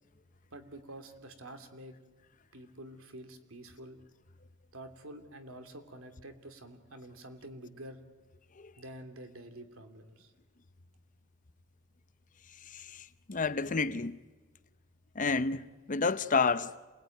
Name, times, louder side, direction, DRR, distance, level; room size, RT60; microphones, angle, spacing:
voice 1, 0.5-1.9 2.5-4.0 4.7-8.0 8.8-10.3, right 1 dB, 85° right, 3.0 m, -48 dB
voice 2, 12.7-14.2 15.2-16.9, left 4 dB, 40° left, 0.8 m, -30 dB
28.0 x 20.5 x 9.2 m
head